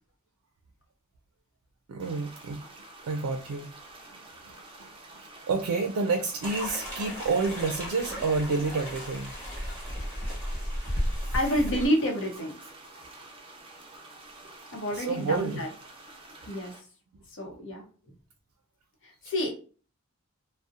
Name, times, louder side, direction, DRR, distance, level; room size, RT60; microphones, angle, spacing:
voice 1, 1.9-2.7 3.0-3.7 4.1-9.4 14.9-15.6, right 4 dB, 90° right, 5 dB, 0.4 m, -30 dB
sound 1, 2.0-16.8, right 2 dB, 25° right, 0.5 m, -49 dB
sound 2, 6.4-11.9, equal, 10° left, 1.1 m, -34 dB
voice 2, 11.3-12.5 14.7-15.7 16.5-16.7 17.3-17.9 19.0-19.5, equal, 60° left, 3 dB, 0.7 m, -28 dB
2.7 x 2.0 x 2.4 m, 0.39 s
head